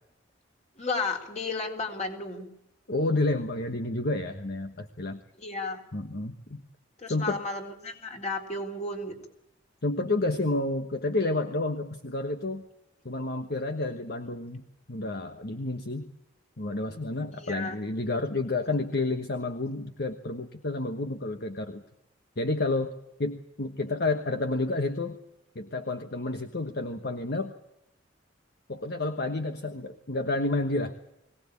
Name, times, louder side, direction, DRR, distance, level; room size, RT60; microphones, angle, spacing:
voice 1, 0.8-2.5 5.4-5.8 7.0-9.2 17.3-17.8, left 3 dB, 35° left, 2 dB, 3.8 m, -33 dB
voice 2, 2.9-5.2 5.9-6.6 7.1-7.4 9.8-12.7 13.0-14.6 14.9-16.1 16.6-21.8 22.4-22.9 23.2-25.2 25.5-27.5 28.7-30.9, left 2 dB, 55° left, 7 dB, 1.3 m, -30 dB
22.5 x 18.5 x 8.5 m, 0.82 s
head